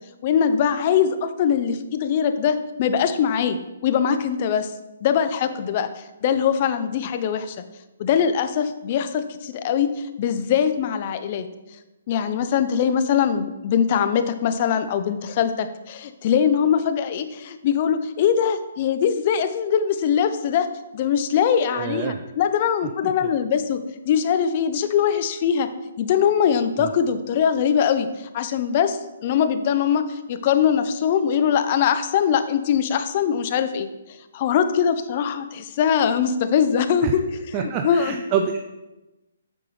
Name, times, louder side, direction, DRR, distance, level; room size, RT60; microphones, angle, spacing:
voice 1, 0.2-3.6 3.8-4.7 5.0-7.6 8.0-11.5 12.1-20.7 20.9-23.8 24.0-25.7 26.0-33.9 34.3-37.2 37.6-38.2, left 8 dB, 40° left, 10 dB, 0.7 m, -22 dB
voice 2, 21.7-22.2 26.8-26.9 37.0-37.1 37.5-38.6, right 7 dB, 30° right, 5 dB, 0.5 m, -26 dB
9.5 x 6.6 x 3.3 m, 1.0 s
figure-of-eight pair, 135°, 0 cm